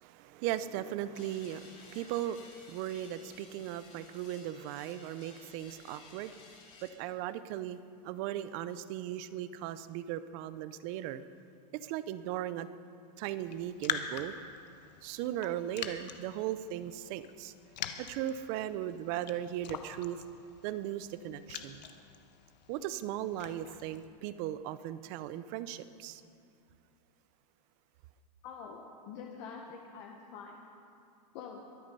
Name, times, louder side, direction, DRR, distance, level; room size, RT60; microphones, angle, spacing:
voice 1, 0.0-6.4 6.8-11.2 11.7-12.7 13.2-14.3 15.0-17.5 18.0-20.2 20.6-21.9 22.7-26.2, right 12 dB, 35° right, 14 dB, 0.5 m, -37 dB
sound 1, 1.1-6.9, left 4 dB, 30° left, 3.6 m, -56 dB
Raindrop, 13.4-24.1, left 8 dB, 85° left, 1.1 m, -44 dB
voice 2, 28.4-30.6 31.3-31.6, left 6 dB, 45° left, 1 dB, 1.3 m, -46 dB
23.0 x 8.6 x 5.4 m, 2.5 s
supercardioid pair, 150°, 21 cm